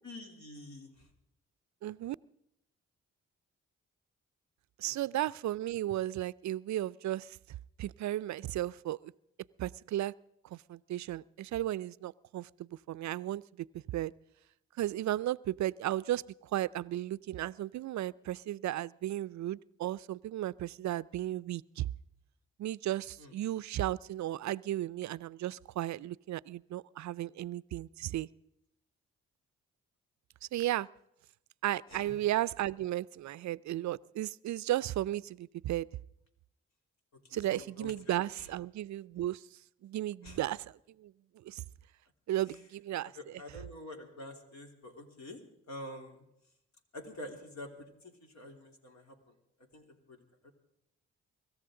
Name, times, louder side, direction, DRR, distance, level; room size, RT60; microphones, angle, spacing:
voice 1, 0.0-1.1 4.8-5.0 23.2-23.3 31.9-32.2 37.3-37.9 38.4-38.5 40.2-40.4 42.5-42.6 43.1-45.4 45.7-46.3 46.9-49.3 49.7-50.5, left 1 dB, 60° left, 2 dB, 3.2 m, -47 dB
voice 2, 1.8-2.2 4.8-7.4 7.8-9.1 9.6-10.1 10.5-13.4 13.9-14.1 14.8-16.2 16.5-21.9 22.6-28.3 30.5-30.9 31.6-35.9 37.3-39.4 39.8-40.7 41.0-41.1 41.4-41.6 42.3-43.1, right 13 dB, 60° right, 19 dB, 0.5 m, -34 dB
24.5 x 14.0 x 3.8 m, 0.80 s
hypercardioid pair, 45°, 32 cm